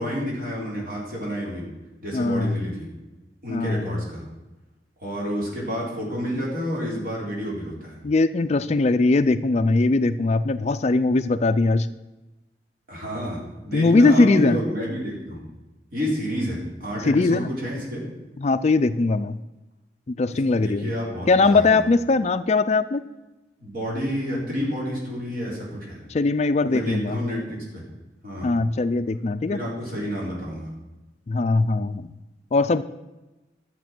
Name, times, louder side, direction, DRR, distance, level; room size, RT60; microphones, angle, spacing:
voice 1, 0.0-1.7 2.0-2.9 3.4-4.2 5.0-8.0 12.9-15.4 15.9-18.0 20.5-21.8 23.6-26.0 26.7-27.8 28.2-28.5 29.5-30.7, equal, 50° right, -3 dB, 4.0 m, -29 dB
voice 2, 2.1-2.6 3.5-3.8 6.4-6.5 8.0-11.9 13.7-14.6 17.0-17.5 18.4-19.4 20.2-20.9 21.3-23.1 26.1-27.2 28.4-29.6 31.3-32.1 32.5-32.8, left 3 dB, 35° left, 12 dB, 0.4 m, -20 dB
11.5 x 7.5 x 6.0 m, 1.1 s
head